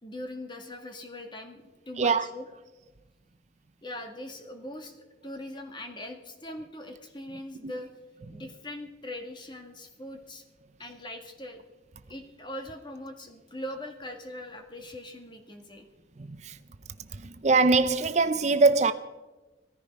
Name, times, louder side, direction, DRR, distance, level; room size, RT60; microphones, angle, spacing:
voice 1, 0.0-2.5 3.8-5.0 5.2-7.9 8.3-10.4 10.8-11.6 12.1-15.8, left 1 dB, 25° left, 1.7 m, -41 dB
voice 2, 16.2-16.6 17.1-18.9, right 3 dB, 40° right, 0.6 m, -23 dB
17.5 x 14.0 x 5.3 m
head